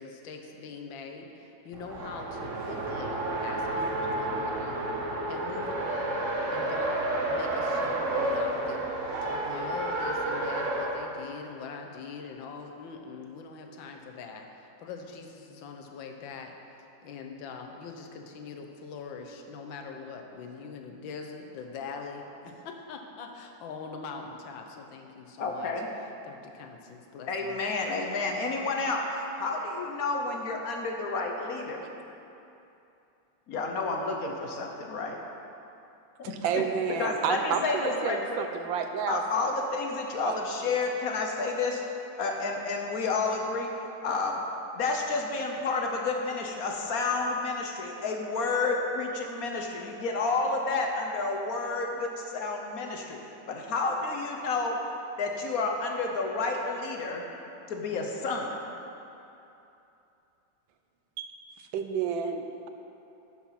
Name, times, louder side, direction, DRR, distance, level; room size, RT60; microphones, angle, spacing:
voice 1, 0.0-3.9 4.2-4.9 5.3-8.8 9.2-16.5 17.0-25.7 26.2-27.6, left 5 dB, 85° left, 3 dB, 1.6 m, -42 dB
Race car auto racing, 1.7-11.0, right 1 dB, 50° right, 1.2 m, -30 dB
voice 2, 25.4-25.9 27.3-29.1 29.3-31.9 33.5-35.2 36.5-36.6 37.0-38.4 39.1-41.8 42.2-43.7 44.0-44.4 44.7-53.2 53.5-54.8 55.2-57.2 57.7-58.6, left 3 dB, 55° left, 1 dB, 1.1 m, -30 dB
voice 3, 36.4-39.2 40.2-40.4 61.2-61.3 61.7-62.7, right 7 dB, 90° right, 6 dB, 1.4 m, -30 dB
10.5 x 5.7 x 5.7 m, 2.8 s
omnidirectional pair, 2.0 m